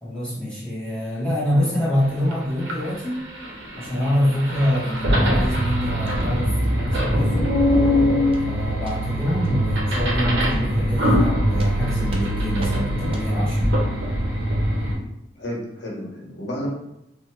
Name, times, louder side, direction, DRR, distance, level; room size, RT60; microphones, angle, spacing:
voice 1, 0.0-3.2 3.8-7.6 8.4-13.7, left 1 dB, 5° left, -8 dB, 0.9 m, -25 dB
sound 1, 2.0-2.1 2.3-15.0, equal, 65° right, 0.6 m, -22 dB
sound 2, 5.0-5.1 5.5-5.6 6.1-6.2 6.6-6.7 7.2-7.3 7.7-7.9 8.3-8.5 8.8-9.0 9.4-9.5 10.0-10.1 10.5-10.6 11.0-11.2 11.6-11.7 12.1-12.3 12.6-12.8 13.1-13.3, right 1 dB, 30° right, 0.3 m, -38 dB
voice 2, 15.3-16.7, equal, 70° left, -3 dB, 0.8 m, -31 dB
2.8 x 2.1 x 2.9 m, 0.82 s
head